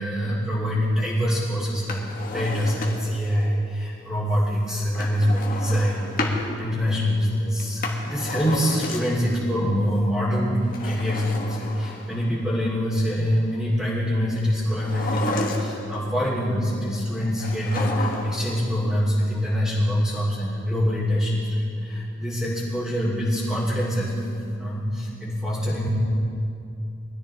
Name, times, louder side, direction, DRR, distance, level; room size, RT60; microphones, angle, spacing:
voice 1, 0.0-24.3 24.6-25.9, equal, ahead, -10 dB, 2.7 m, -25 dB
Drawer open or close, 1.7-3.3 4.9-6.4 7.6-9.4 10.6-12.3 14.7-16.0 17.4-18.5 18.8-18.9, left 2 dB, 45° left, 1.5 m, -31 dB
21.5 x 13.5 x 3.5 m, 2.6 s
head